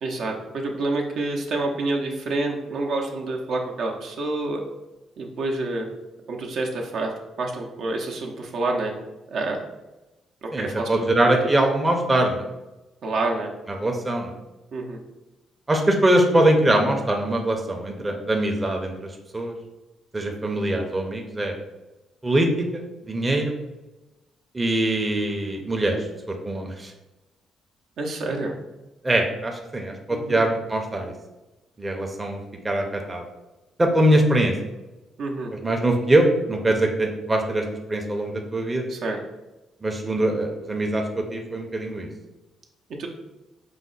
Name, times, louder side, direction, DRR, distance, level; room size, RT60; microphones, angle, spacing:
voice 1, 0.0-4.6 5.2-5.9 6.3-7.1 7.4-8.9 9.3-9.6 10.4-11.4 13.0-13.5 14.7-15.0 28.0-28.5 30.1-30.4 35.2-35.5 38.9-39.2 43.0-43.1, right 2 dB, 70° right, 0 dB, 0.6 m, -28 dB
voice 2, 10.5-12.5 13.8-14.3 15.7-19.5 20.1-21.5 22.2-23.5 24.5-26.0 26.3-26.9 29.0-31.1 31.8-32.4 32.6-33.2 33.8-34.5 35.5-38.9 39.8-42.1, right 1 dB, 20° right, 2 dB, 0.6 m, -22 dB
4.9 x 2.1 x 3.8 m, 1.0 s
cardioid pair, 90°, 0 cm